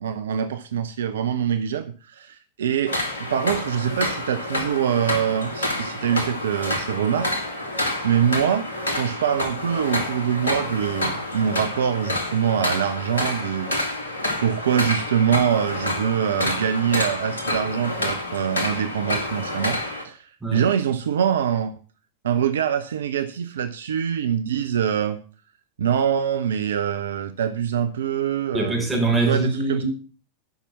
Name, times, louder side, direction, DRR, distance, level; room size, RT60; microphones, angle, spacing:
voice 1, 0.0-2.9 3.3-7.4 8.0-8.7 8.9-13.7 14.4-21.7 22.2-25.2 25.8-28.8 29.3-29.8, right 8 dB, 65° right, 0.6 m, -24 dB
sound 1, 2.9-20.0, left 1 dB, 75° left, 2.2 m, -28 dB
voice 2, 28.5-29.8, right 3 dB, 10° right, 4.0 m, -23 dB
9.5 x 5.9 x 6.9 m
figure-of-eight pair, 90°, 0 cm